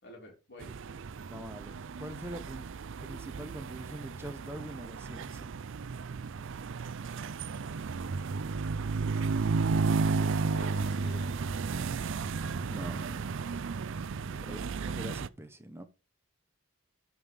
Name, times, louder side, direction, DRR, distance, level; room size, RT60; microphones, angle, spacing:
voice 1, 0.0-0.7 10.1-11.3 14.3-14.7, left 1 dB, 50° left, 3.3 m, -48 dB
sound 1, 0.6-15.3, right 4 dB, 60° right, 0.5 m, -33 dB
voice 2, 1.3-2.7 3.0-5.6 12.7-13.4 14.4-14.6 14.8-15.8, right 1 dB, 10° right, 1.1 m, -44 dB
13.0 x 5.5 x 5.3 m
head